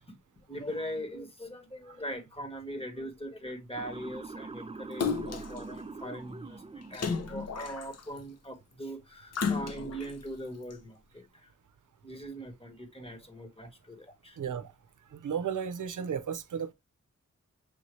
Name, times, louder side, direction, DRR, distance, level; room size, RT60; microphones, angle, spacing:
voice 1, 0.5-11.5 12.0-14.4, equal, 20° left, 1.3 m, -41 dB
Motor vehicle (road) / Siren, 3.8-7.9, right 3 dB, 20° right, 0.5 m, -44 dB
Splash splatter, 5.0-5.6 6.9-8.2 9.3-10.1 10.7-10.8, left 5 dB, 55° left, 0.7 m, -32 dB
voice 2, 14.4-14.7 15.1-16.7, right 7 dB, 80° right, 0.6 m, -34 dB
6.4 x 2.7 x 3.0 m
cardioid pair, 50°, 30 cm